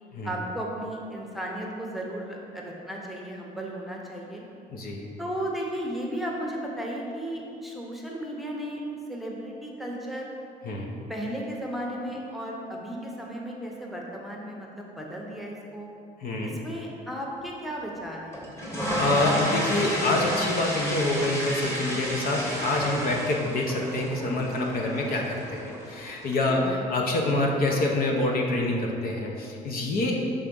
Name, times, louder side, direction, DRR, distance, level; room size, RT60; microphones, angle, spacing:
voice 1, 0.2-4.4 5.2-8.8 9.1-10.3 11.1-15.9 16.4-18.5 26.5-26.9, equal, ahead, -2 dB, 0.8 m, -35 dB
voice 2, 4.7-5.1 10.6-10.9 16.2-16.6 18.7-30.2, left 2 dB, 60° left, 0 dB, 0.9 m, -26 dB
sound 1, 18.3-26.4, equal, 15° left, 1.4 m, -31 dB
5.8 x 3.7 x 5.3 m, 2.6 s
cardioid pair, 110°, 17 cm